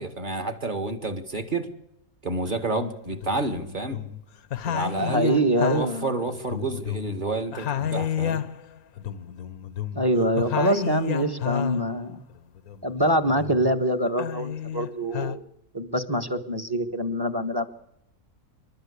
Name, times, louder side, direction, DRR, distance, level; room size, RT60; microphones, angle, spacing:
voice 1, 0.0-1.7 2.2-4.0 4.6-5.4 5.7-8.4, right 2 dB, 30° right, 6 dB, 2.0 m, -29 dB
sound 1, 2.5-2.6 3.1-4.2 4.5-7.3 7.5-11.9 12.4-13.7 14.1-15.4, left 9 dB, 70° left, 1.4 m, -31 dB
voice 2, 5.0-6.1 9.9-12.2 12.8-15.4 15.7-17.7, right 1 dB, 15° right, 10 dB, 1.4 m, -24 dB
27.5 x 12.5 x 8.4 m, 0.81 s
omnidirectional pair, 1.6 m